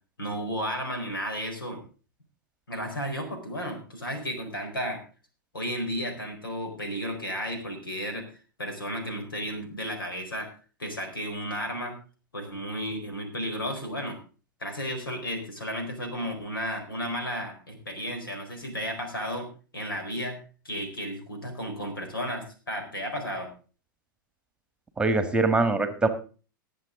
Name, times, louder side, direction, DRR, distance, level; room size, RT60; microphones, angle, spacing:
voice 1, 0.2-1.8 2.7-5.0 5.5-8.3 8.6-10.5 10.8-12.0 12.3-14.2 14.6-19.5 19.7-20.4 20.6-23.5, equal, 85° left, 4 dB, 4.3 m, -33 dB
voice 2, 25.0-26.1, right 3 dB, 10° right, 8 dB, 1.7 m, -23 dB
20.0 x 7.6 x 3.7 m, 0.37 s
hypercardioid pair, 105°, 11 cm